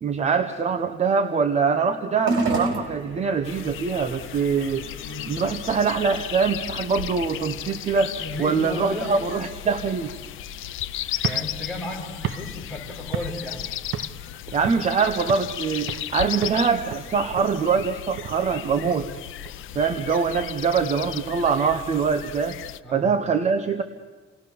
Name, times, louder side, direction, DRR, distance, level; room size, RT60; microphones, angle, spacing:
voice 1, 0.0-4.8 5.3-8.1 8.4-10.1 14.5-19.1 19.7-22.6 22.9-23.8, right 5 dB, 35° right, 7 dB, 1.0 m, -23 dB
sound 1, 2.2-20.8, right 3 dB, 70° right, 4.5 m, -37 dB
birds forest morning, 3.4-22.8, left 12 dB, 85° left, 0.7 m, -35 dB
voice 2, 5.0-5.4 8.2-9.1 11.2-13.7 22.8-23.1, left 1 dB, ahead, -4 dB, 6.6 m, -34 dB
sound 2, 11.1-13.6 13.9-14.3 14.6-15.6 15.9-16.2 16.4-19.5, right 10 dB, 90° right, 0.9 m, -35 dB
29.0 x 19.0 x 6.9 m, 1.3 s
cardioid pair, 170°, 20 cm